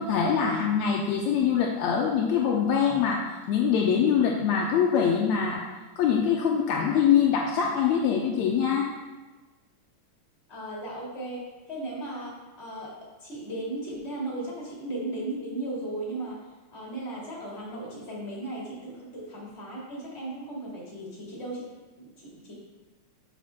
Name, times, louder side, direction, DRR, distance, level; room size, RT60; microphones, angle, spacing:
voice 1, 0.0-3.2 3.5-5.6 6.0-8.9, left 7 dB, 80° left, 0 dB, 1.9 m, -24 dB
voice 2, 10.5-16.4 16.7-21.7 22.0-22.5, right 2 dB, 20° left, -5 dB, 2.4 m, -36 dB
6.4 x 5.0 x 5.8 m, 1.2 s
omnidirectional pair, 3.5 m